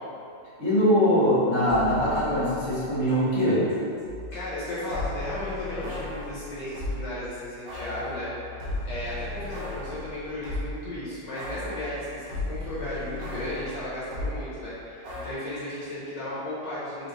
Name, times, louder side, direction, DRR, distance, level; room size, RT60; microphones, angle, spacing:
voice 1, 0.6-3.7, equal, 40° left, -10 dB, 1.5 m, -22 dB
sound 1, 1.7-3.4 3.7-7.0 7.7-10.9 11.3-14.4 15.0-15.3, left 2 dB, 70° right, 1.4 m, -36 dB
voice 2, 4.3-17.1, left 1 dB, 70° left, -10 dB, 1.6 m, -35 dB
4.2 x 3.2 x 3.1 m, 2.6 s
omnidirectional pair, 2.1 m